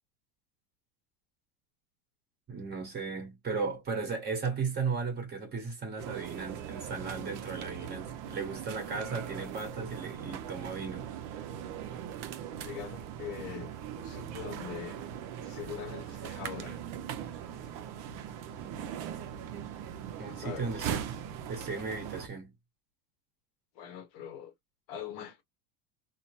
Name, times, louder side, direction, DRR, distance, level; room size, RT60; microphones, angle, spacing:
voice 1, 2.5-11.1 20.2-21.0 21.5-22.5, right 4 dB, 20° right, 1.1 m, -36 dB
sound 1, 6.0-22.3, right 9 dB, 45° right, 0.5 m, -40 dB
voice 2, 12.6-15.0 15.4-16.7 20.4-20.7 23.8-24.5 24.9-25.4, left 9 dB, 55° left, 0.8 m, -42 dB
2.8 x 2.0 x 2.8 m
cardioid pair, 160°, 44 cm